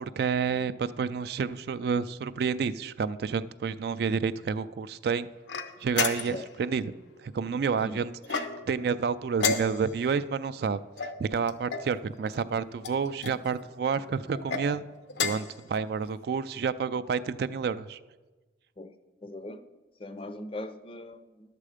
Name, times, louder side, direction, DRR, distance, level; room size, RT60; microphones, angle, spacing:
voice 1, 0.0-5.3 5.8-6.9 7.2-14.8 15.2-18.0, right 5 dB, 60° right, 0.3 m, -30 dB
sound 1, 5.5-6.5 8.2-8.8 9.4-10.1 11.0-11.9 12.8-13.4 14.3-14.7 15.1-15.6, left 5 dB, 80° left, 0.7 m, -32 dB
voice 2, 19.2-19.6 20.0-21.6, left 1 dB, 30° left, 0.5 m, -40 dB
11.0 x 7.5 x 4.9 m
head